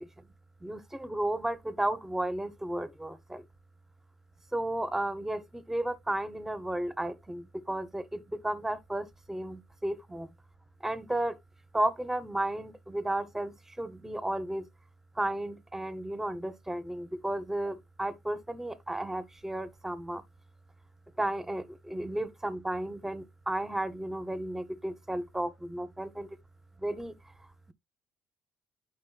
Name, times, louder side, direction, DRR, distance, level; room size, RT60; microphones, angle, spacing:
voice 1, 0.6-3.4 4.5-10.3 10.8-11.4 11.7-14.6 15.2-20.2 21.2-26.3 26.8-27.1, right 1 dB, 10° right, 0.9 m, -33 dB
8.8 x 5.2 x 2.3 m
supercardioid pair, 70°, 3 cm